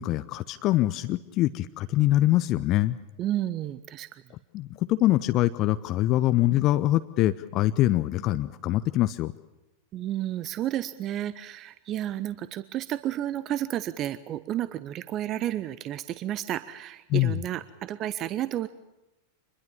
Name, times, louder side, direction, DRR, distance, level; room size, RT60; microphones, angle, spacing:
voice 1, 0.0-3.0 4.5-9.3 17.1-17.4, left 15 dB, 35° left, 12 dB, 0.7 m, -24 dB
voice 2, 3.2-4.2 9.9-18.7, right 12 dB, 35° right, 15 dB, 0.7 m, -31 dB
25.0 x 21.5 x 7.1 m, 0.99 s
figure-of-eight pair, 90°, 0 cm